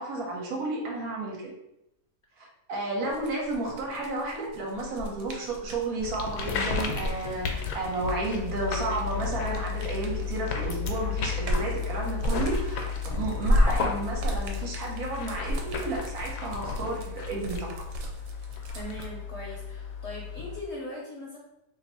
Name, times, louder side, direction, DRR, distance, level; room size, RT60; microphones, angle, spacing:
voice 1, 0.0-1.5 2.4-17.7, right 2 dB, 65° right, -1 dB, 1.2 m, -32 dB
sound 1, 3.1-5.9 6.8-10.6 11.0-19.1, equal, 90° right, 1.2 m, -32 dB
sound 2, 6.0-20.6, left 6 dB, 75° left, 1.1 m, -33 dB
voice 2, 18.7-21.4, left 1 dB, 55° left, -4 dB, 0.8 m, -39 dB
2.9 x 2.6 x 4.2 m, 0.88 s
omnidirectional pair, 1.8 m